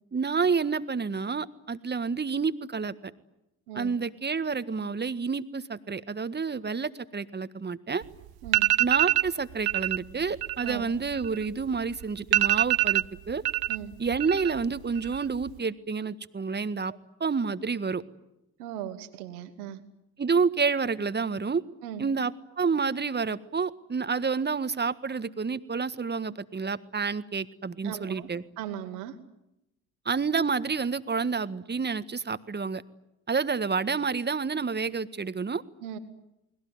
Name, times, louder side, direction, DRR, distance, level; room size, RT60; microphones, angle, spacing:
voice 1, 0.1-2.9 3.7-8.0 8.8-13.4 14.0-16.9 17.2-18.0 20.2-21.6 22.0-28.4 30.0-32.8 33.3-35.6, right 5 dB, 25° right, 13 dB, 1.7 m, -29 dB
sound 1, 8.0-8.1 8.4-9.3 9.7-10.0 10.3-11.7 12.0-12.1 12.3-13.8 14.1-14.7 15.0-15.5, right 16 dB, 55° right, 1.0 m, -24 dB
voice 2, 18.6-19.8 21.8-22.0 27.8-28.3 28.6-29.2 35.8-36.0, right 10 dB, 80° right, 8 dB, 2.6 m, -38 dB
30.0 x 21.0 x 9.5 m, 0.88 s
hypercardioid pair, 55°, 43 cm